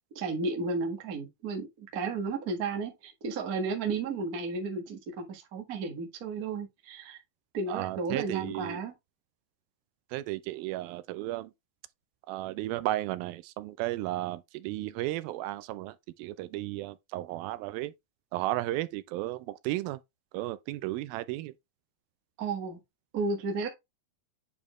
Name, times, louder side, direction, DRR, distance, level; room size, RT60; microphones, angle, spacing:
voice 1, 0.1-7.2 7.5-8.9 22.4-22.8 23.1-23.7, right 4 dB, 50° right, 1.1 m, -33 dB
voice 2, 7.7-8.8 10.1-11.5 12.3-17.9 18.3-20.0 20.3-21.5, right 16 dB, 85° right, 2.4 m, -34 dB
8.7 x 4.2 x 3.1 m
omnidirectional pair, 4.1 m